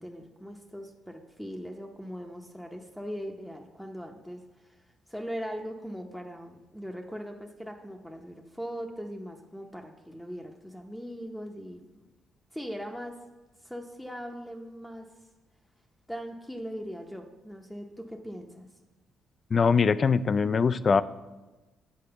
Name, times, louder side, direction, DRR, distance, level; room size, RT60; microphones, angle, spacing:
voice 1, 0.0-4.8 5.1-12.0 12.5-13.2 13.6-15.1 16.1-18.7, equal, 5° left, 2 dB, 0.7 m, -40 dB
voice 2, 19.5-21.0, left 5 dB, 40° left, 16 dB, 0.3 m, -22 dB
8.6 x 4.8 x 6.7 m, 1.1 s
cardioid pair, 90°, 0 cm